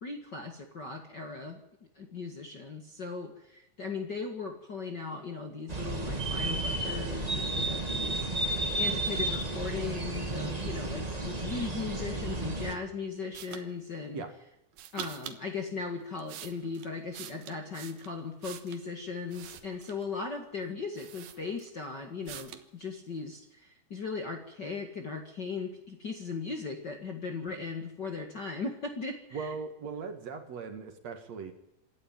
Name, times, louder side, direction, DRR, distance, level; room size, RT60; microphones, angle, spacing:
voice 1, 0.0-1.6 2.0-14.2 14.9-29.5, left 4 dB, 40° left, 4 dB, 1.8 m, -38 dB
sound 1, 5.7-12.8, right 2 dB, 15° right, 1.3 m, -32 dB
sound 2, 13.3-13.7 14.7-15.4 16.0-18.9 19.3-20.1 20.6-20.7 21.0-21.8 22.3-22.7, right 10 dB, 90° right, 3.0 m, -45 dB
voice 2, 29.3-31.5, right 5 dB, 55° right, 6 dB, 2.7 m, -39 dB
26.5 x 12.0 x 9.0 m, 0.87 s
omnidirectional pair, 4.1 m